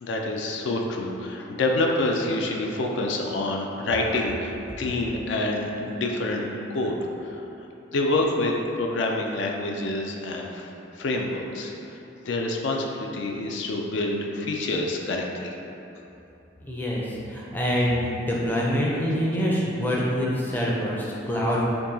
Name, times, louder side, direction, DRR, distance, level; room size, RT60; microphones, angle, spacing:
voice 1, 0.0-6.5 6.7-7.5 7.9-15.5, left 2 dB, 70° left, 0 dB, 0.4 m, -27 dB
voice 2, 16.6-21.7, equal, 10° left, -5 dB, 0.4 m, -25 dB
4.5 x 2.7 x 2.7 m, 2.9 s
head